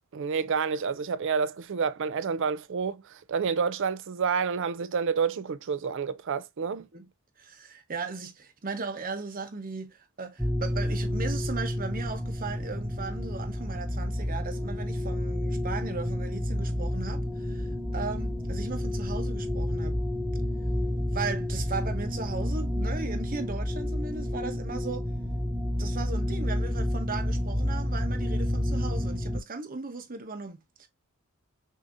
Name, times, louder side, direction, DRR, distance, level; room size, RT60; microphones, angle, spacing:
voice 1, 0.1-3.0 3.3-6.8, right 6 dB, 60° right, 0.4 m, -29 dB
voice 2, 7.4-20.0 21.1-25.1 25.8-30.9, right 4 dB, 45° right, 0.9 m, -37 dB
sound 1, 10.4-29.4, left 1 dB, 5° right, 0.7 m, -30 dB
6.3 x 2.7 x 2.6 m
head